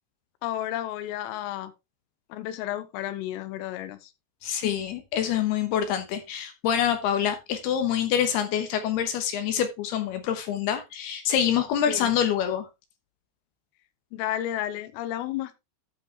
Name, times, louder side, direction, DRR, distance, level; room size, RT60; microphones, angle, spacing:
voice 1, 0.4-1.7 2.3-4.1 4.6-4.8 11.9-12.1 14.1-15.6, left 12 dB, 90° left, 3.5 m, -32 dB
voice 2, 4.4-12.7, left 9 dB, 75° left, 2.5 m, -26 dB
13.5 x 5.4 x 3.3 m
omnidirectional pair, 5.8 m